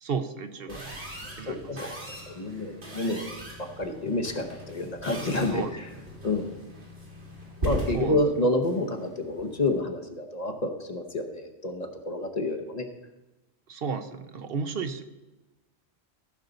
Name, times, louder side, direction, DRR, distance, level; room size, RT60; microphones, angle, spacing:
voice 1, 0.0-0.9 1.4-1.7 5.5-5.7 7.9-8.2 13.7-15.0, right 5 dB, 65° right, 9 dB, 0.9 m, -33 dB
sound 1, 0.7-9.8, equal, 80° right, 2.5 m, -39 dB
voice 2, 1.2-5.9 6.2-6.6 7.6-12.9, left 2 dB, 40° left, 4 dB, 0.9 m, -29 dB
15.0 x 6.4 x 3.9 m, 1.0 s
omnidirectional pair, 1.1 m